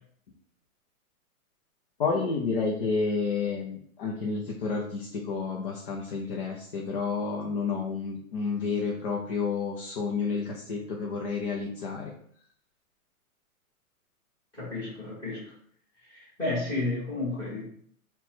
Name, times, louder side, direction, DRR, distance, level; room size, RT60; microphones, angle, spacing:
voice 1, 2.0-12.1, left 4 dB, 40° left, -2 dB, 0.6 m, -30 dB
voice 2, 14.5-15.5 16.1-17.7, left 2 dB, 10° left, -7 dB, 1.2 m, -32 dB
4.3 x 2.3 x 4.2 m, 0.63 s
hypercardioid pair, 170°, 43 cm